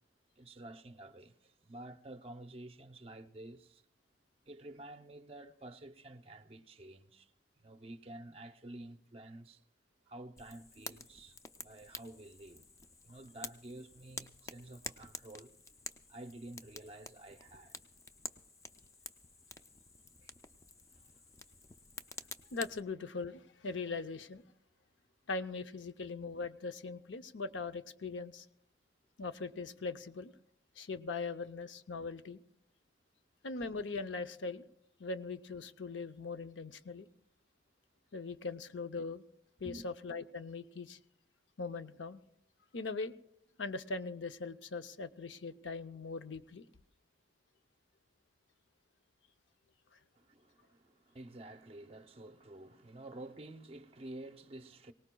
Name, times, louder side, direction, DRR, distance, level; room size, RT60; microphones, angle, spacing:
voice 1, 0.4-3.8 4.5-9.6 10.1-12.6 13.0-15.5 16.1-17.8 20.2-20.3 20.9-21.2 22.4-22.5 39.6-39.9 50.2-54.9, right 1 dB, 35° right, 0.7 m, -50 dB
Fire, 10.4-22.8, left 3 dB, 15° left, 0.4 m, -50 dB
voice 2, 22.5-24.4 25.3-28.5 29.2-30.3 30.8-32.4 33.4-34.6 35.0-37.1 38.1-39.2 39.6-41.0 41.6-42.2 42.7-43.1 43.6-46.6, left 4 dB, 85° left, 0.7 m, -40 dB
24.0 x 18.5 x 2.3 m
head